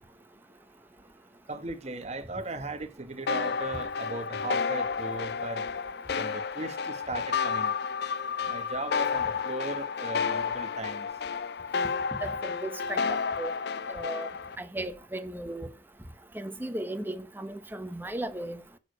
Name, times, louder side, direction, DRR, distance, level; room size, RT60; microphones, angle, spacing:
voice 1, 1.5-5.6 6.1-7.7 8.5-11.1, right 2 dB, 40° right, 1.3 m, -37 dB
sound 1, 3.3-14.6, left 5 dB, 65° left, 0.5 m, -31 dB
voice 2, 12.2-13.5 13.9-14.3 14.6-15.7 16.3-18.6, right 1 dB, 10° right, 1.1 m, -36 dB
11.0 x 4.9 x 6.6 m
head